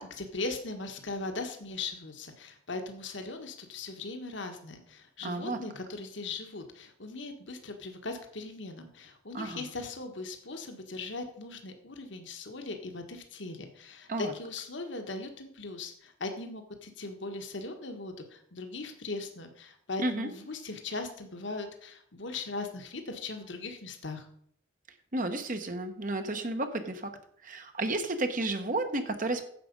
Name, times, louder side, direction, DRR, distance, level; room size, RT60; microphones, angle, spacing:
voice 1, 0.0-24.3, left 3 dB, 65° left, 5 dB, 1.6 m, -39 dB
voice 2, 5.2-5.6 9.3-9.6 14.1-14.3 20.0-20.3 25.1-27.1 27.4-29.4, right 2 dB, 45° right, 7 dB, 1.1 m, -32 dB
10.5 x 7.6 x 5.3 m, 0.67 s
head